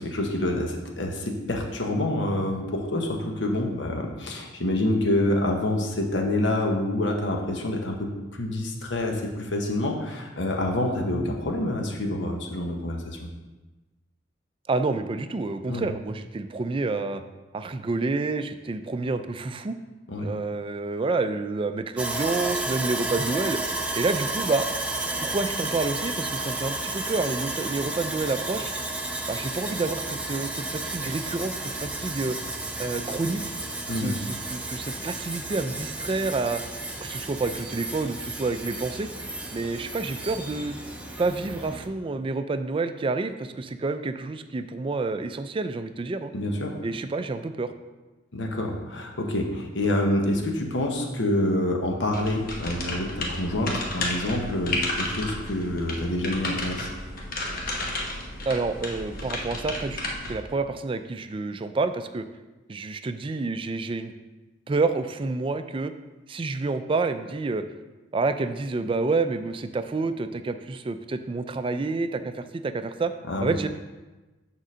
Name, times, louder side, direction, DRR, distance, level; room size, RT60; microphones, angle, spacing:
voice 1, 0.0-13.3 15.7-15.8 20.1-20.3 33.9-34.1 46.3-46.8 48.3-56.9 73.3-73.5, left 1 dB, 75° left, 2 dB, 1.0 m, -27 dB
voice 2, 14.7-17.2 17.5-19.8 20.2-23.6 24.0-24.7 25.2-28.7 29.3-31.5 31.8-32.4 32.8-33.4 33.9-36.6 37.0-39.1 39.5-40.8 41.2-46.3 46.8-47.7 58.4-60.0 60.3-62.3 62.7-64.1 64.7-65.9 66.3-67.6 68.1-73.1 73.4-73.7, right 3 dB, 30° right, 10 dB, 0.4 m, -28 dB
Sawing, 22.0-41.9, right 2 dB, 5° right, 0.8 m, -32 dB
sound 1, 52.1-60.3, left 2 dB, 50° left, 1.1 m, -32 dB
6.7 x 3.8 x 6.2 m, 1.2 s
head